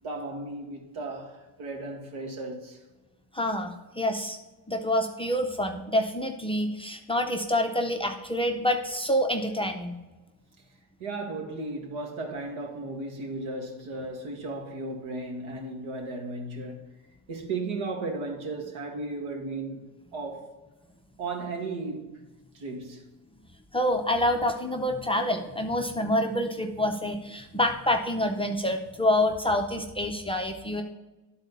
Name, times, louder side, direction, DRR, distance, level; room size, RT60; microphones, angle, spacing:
voice 1, 0.0-2.8 11.0-16.9 17.3-20.5 21.2-22.2 22.5-23.1, right 3 dB, 80° right, 1.9 m, -35 dB
voice 2, 3.3-4.4 4.7-10.0 23.7-30.8, left 1 dB, 10° left, 0.5 m, -27 dB
12.0 x 4.1 x 4.0 m
cardioid pair, 140°, 47 cm